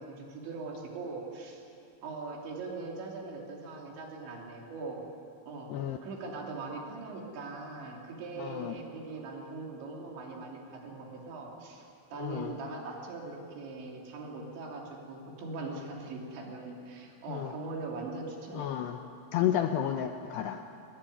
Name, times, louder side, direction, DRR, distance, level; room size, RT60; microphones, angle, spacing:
voice 1, 0.0-1.6 2.0-5.0 5.5-5.7 6.0-18.7, right 3 dB, 65° right, 0 dB, 5.1 m, -41 dB
voice 2, 8.4-8.8 12.2-12.6 17.3-17.5 18.5-19.0 19.3-20.6, left 10 dB, 80° left, 6 dB, 2.5 m, -31 dB
22.0 x 19.5 x 9.9 m, 2.6 s
omnidirectional pair, 5.6 m